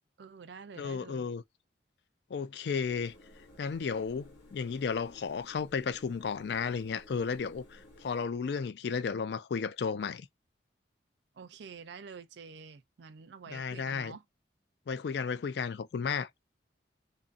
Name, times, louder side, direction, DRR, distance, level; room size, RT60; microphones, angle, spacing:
voice 1, 0.2-1.3 11.3-14.2, right 5 dB, 70° right, 0.4 m, -48 dB
voice 2, 0.8-1.4 2.3-3.1 3.6-10.3 13.5-14.2 14.9-16.3, left 5 dB, 60° left, 0.3 m, -33 dB
sound 1, 2.8-8.3, left 1 dB, 80° left, 1.2 m, -56 dB
2.6 x 2.6 x 2.4 m
head